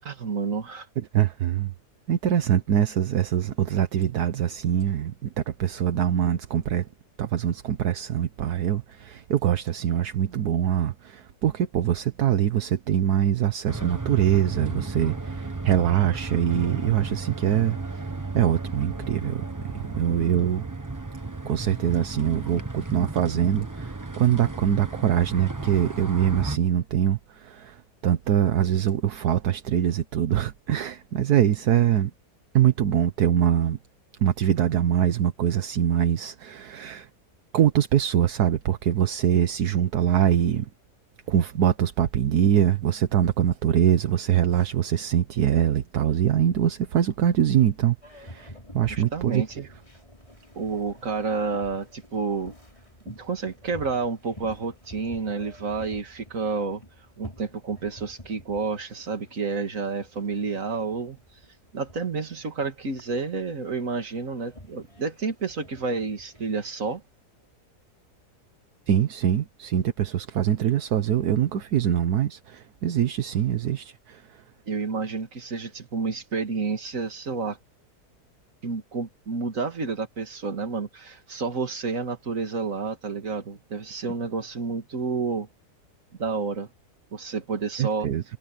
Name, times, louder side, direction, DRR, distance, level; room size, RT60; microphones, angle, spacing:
voice 1, 0.0-0.9 20.0-20.2 48.9-49.7 50.6-52.5 53.1-56.8 57.2-61.2 61.7-67.0 74.7-77.6 78.6-85.5 86.2-86.7 87.1-88.1, right 4 dB, 55° right, 2.5 m, -30 dB
voice 2, 1.1-1.7 2.1-6.9 7.2-18.1 18.3-19.4 19.7-20.7 21.4-32.1 32.5-33.8 34.2-37.1 37.5-40.7 41.3-49.4 68.9-74.4 87.8-88.2, right 10 dB, 75° right, 1.5 m, -23 dB
sound 1, 13.7-26.6, right 3 dB, 15° right, 0.9 m, -34 dB
Boat Water vehicle, 48.0-67.0, left 1 dB, 20° left, 6.7 m, -49 dB
omnidirectional pair, 1.7 m